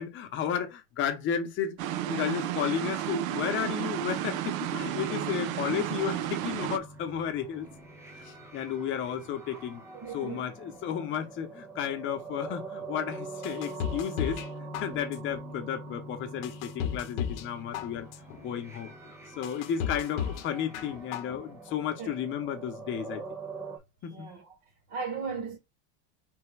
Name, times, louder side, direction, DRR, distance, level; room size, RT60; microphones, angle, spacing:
voice 1, 0.0-1.8 2.1-7.7 8.2-9.8 10.1-18.1 18.4-18.9 19.4-23.2 24.0-24.3, left 8 dB, 30° left, 0.9 m, -33 dB
sound 1, 1.8-6.8, right 12 dB, 85° right, 0.6 m, -32 dB
sound 2, 4.8-23.8, right 3 dB, 5° right, 0.4 m, -44 dB
voice 2, 9.9-10.5 22.0-22.1 24.1-24.5 24.9-25.6, right 5 dB, 40° right, 1.2 m, -36 dB
sound 3, 13.4-14.5 14.7-15.4 15.9-16.0 16.4-17.5 17.7-18.4 18.9-19.0 19.4-20.4 20.7-21.4 21.7-21.8, left 9 dB, 60° left, 0.8 m, -34 dB
3.4 x 3.0 x 4.6 m
supercardioid pair, 160°, 40 cm